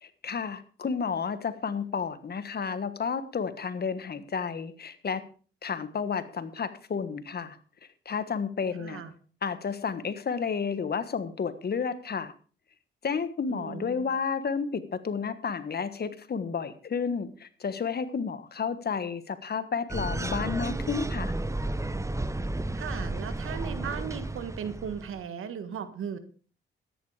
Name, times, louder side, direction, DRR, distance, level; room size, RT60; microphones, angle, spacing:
voice 1, 0.0-5.2 5.6-7.6 8.0-9.0 9.4-12.3 13.0-21.3, left 6 dB, 50° left, 13 dB, 1.4 m, -31 dB
voice 2, 8.8-9.1 13.5-14.0 22.7-26.2, right 7 dB, 80° right, 11 dB, 1.7 m, -37 dB
sound 1, 19.9-25.2, right 2 dB, 15° right, 0.8 m, -32 dB
13.5 x 10.5 x 4.9 m, 0.40 s
cardioid pair, 80°, 21 cm